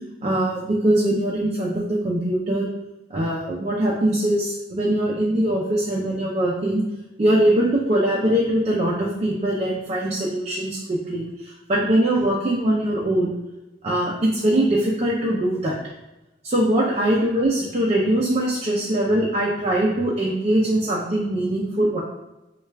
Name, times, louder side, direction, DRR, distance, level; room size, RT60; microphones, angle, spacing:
voice 1, 0.2-2.7 3.1-6.8 7.2-13.3 13.8-15.7 16.4-22.0, right 1 dB, 35° right, -4 dB, 0.5 m, -22 dB
3.3 x 2.3 x 3.2 m, 0.98 s
head